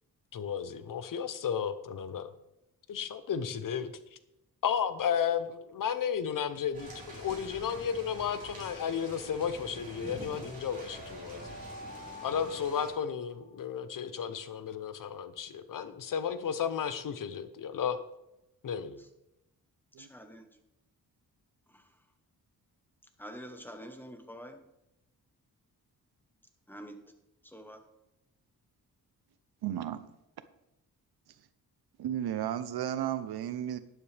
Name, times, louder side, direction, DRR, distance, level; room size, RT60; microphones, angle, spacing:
voice 1, 0.3-2.3 2.9-3.9 4.6-11.5 12.2-18.0 18.6-19.0, left 8 dB, 60° left, 12 dB, 0.8 m, -33 dB
sound 1, 6.7-12.9, right 1 dB, 20° right, 4.9 m, -46 dB
sound 2, 8.3-9.3 10.4-13.7, left 2 dB, 40° left, 2.8 m, -49 dB
voice 2, 20.0-20.4 23.2-24.6 26.7-26.9 27.5-27.8, equal, 5° left, 6 dB, 1.1 m, -46 dB
voice 3, 29.6-30.1 32.0-33.8, right 11 dB, 90° right, 13 dB, 0.8 m, -33 dB
12.0 x 10.0 x 3.4 m, 0.88 s
wide cardioid pair, 135°, 37 cm